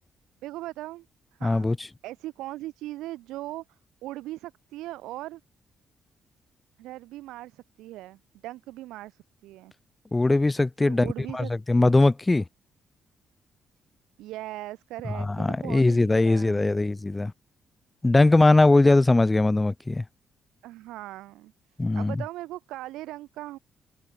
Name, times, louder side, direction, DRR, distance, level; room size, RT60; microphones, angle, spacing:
voice 1, 0.4-1.1 1.3-1.7 2.0-5.4 6.8-9.7 10.8-11.9 14.2-16.6 20.6-21.5 21.9-23.6, right 16 dB, 65° right, 3.2 m, -39 dB
voice 2, 1.4-1.8 10.1-11.1 11.3-12.4 15.2-17.3 18.0-20.0 21.8-22.2, left 2 dB, 20° left, 3.3 m, -20 dB
figure-of-eight pair, 40°, 0 cm